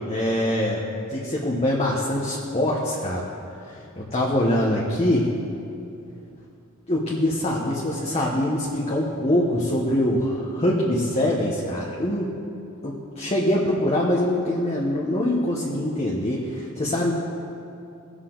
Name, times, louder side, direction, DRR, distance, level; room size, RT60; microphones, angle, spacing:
voice 1, 0.1-0.8 1.1-3.3 3.6-5.3 6.9-12.3 12.8-17.1, left 1 dB, 30° left, -3 dB, 1.0 m, -24 dB
18.5 x 6.5 x 3.9 m, 2.7 s
head